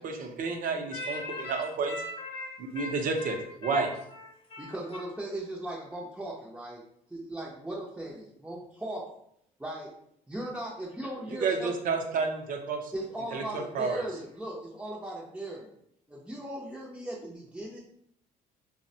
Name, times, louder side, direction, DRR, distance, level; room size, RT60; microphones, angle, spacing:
voice 1, 0.0-2.0 2.6-3.4 3.6-3.9 11.3-12.9 13.3-14.1, right 4 dB, 55° right, 4 dB, 0.5 m, -30 dB
voice 2, 0.9-4.7, left 2 dB, 30° left, -3 dB, 0.7 m, -40 dB
voice 3, 4.6-6.8 7.1-9.0 9.6-9.9 10.3-11.7 12.9-15.7 16.1-17.8, right 1 dB, 5° right, -6 dB, 0.5 m, -38 dB
3.3 x 2.1 x 2.6 m, 0.70 s
cardioid pair, 110°, 17 cm